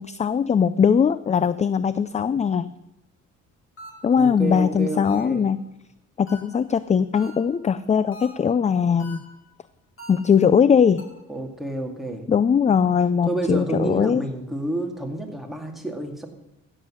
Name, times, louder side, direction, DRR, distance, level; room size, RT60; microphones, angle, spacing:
voice 1, 0.0-2.7 4.0-5.6 6.2-9.2 10.1-11.1 12.3-14.3, left 7 dB, 25° left, 15 dB, 0.4 m, -20 dB
sound 1, 3.8-4.2 5.0-5.5 6.3-6.7 7.1-7.6 8.1-8.6 9.0-9.5 10.0-10.4 11.0-11.4, left 1 dB, 45° left, 5.4 m, -44 dB
voice 2, 4.2-5.5 11.3-12.3 13.2-16.3, right 2 dB, ahead, 1 dB, 2.3 m, -29 dB
15.0 x 7.6 x 6.3 m, 0.86 s
cardioid pair, 90°, 30 cm